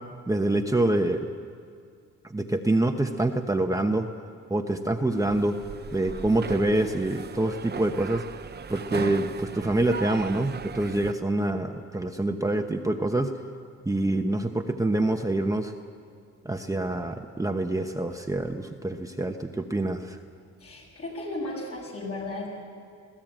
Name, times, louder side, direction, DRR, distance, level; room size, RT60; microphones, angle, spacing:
voice 1, 0.3-1.3 2.2-4.1 4.5-5.6 5.9-8.2 8.7-13.3 13.9-15.7 16.4-20.2, right 2 dB, 10° right, 4 dB, 1.0 m, -26 dB
sound 1, 5.2-11.1, right 6 dB, 35° right, 0.8 m, -37 dB
voice 2, 20.6-22.5, left 2 dB, 50° left, -1 dB, 7.6 m, -35 dB
21.5 x 16.0 x 9.1 m, 2.2 s
cardioid pair, 90°, 30 cm